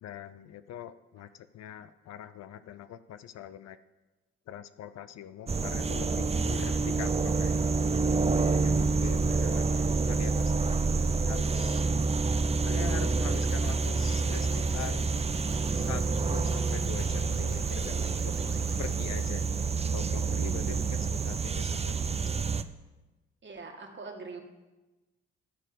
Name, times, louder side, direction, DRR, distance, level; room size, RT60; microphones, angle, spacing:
voice 1, 0.0-3.8 4.5-7.5 8.2-10.7 11.2-11.8 12.6-15.1 15.8-16.0 16.3-18.3 18.8-19.5 19.9-22.4, left 10 dB, 60° left, 13 dB, 0.6 m, -43 dB
sound 1, 5.5-22.6, right 4 dB, 20° right, 0.6 m, -28 dB
voice 2, 9.3-10.0 23.4-24.4, right 4 dB, 40° right, 3 dB, 2.0 m, -44 dB
sound 2, 12.4-19.2, right 3 dB, 65° right, 3.1 m, -49 dB
11.5 x 4.6 x 8.2 m, 1.1 s
hypercardioid pair, 50°, 29 cm